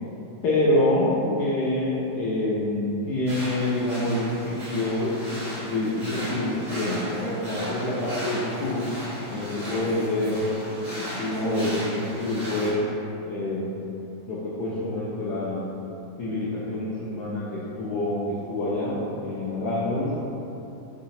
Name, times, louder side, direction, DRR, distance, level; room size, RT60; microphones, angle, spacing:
voice 1, 0.4-5.1 5.6-8.9 9.3-10.4 10.8-12.8 13.2-15.6 16.2-20.1, left 1 dB, 70° left, -8 dB, 1.0 m, -27 dB
sound 1, 3.3-12.7, equal, ahead, 1.1 m, -35 dB
4.9 x 2.8 x 2.7 m, 2.9 s
omnidirectional pair, 2.1 m